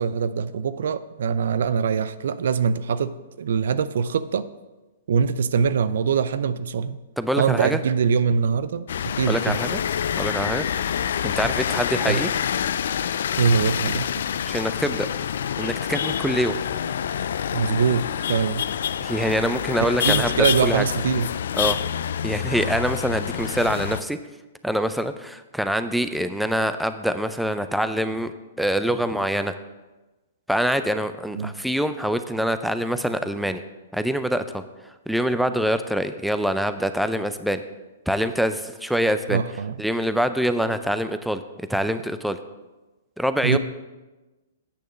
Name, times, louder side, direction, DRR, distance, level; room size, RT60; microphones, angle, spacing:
voice 1, 0.0-4.5 5.1-7.0 7.4-9.6 12.1-12.2 13.4-14.1 17.5-18.6 20.0-21.3 31.3-31.5 39.3-39.8 43.4-43.6, right 6 dB, 70° right, 14 dB, 0.4 m, -23 dB
voice 2, 7.2-7.8 9.3-9.8 10.2-10.7 11.2-12.3 14.5-15.1 15.6-16.6 19.0-20.8 21.6-21.8 22.2-24.2 24.6-29.5 30.5-33.6 33.9-34.6 35.1-37.6 38.1-39.4 39.8-41.4 41.7-42.4 43.2-43.6, equal, ahead, 10 dB, 0.4 m, -25 dB
sound 1, 8.9-24.0, left 8 dB, 70° left, 0.3 m, -27 dB
8.7 x 6.5 x 5.1 m, 1.1 s
hypercardioid pair, 130°, 0 cm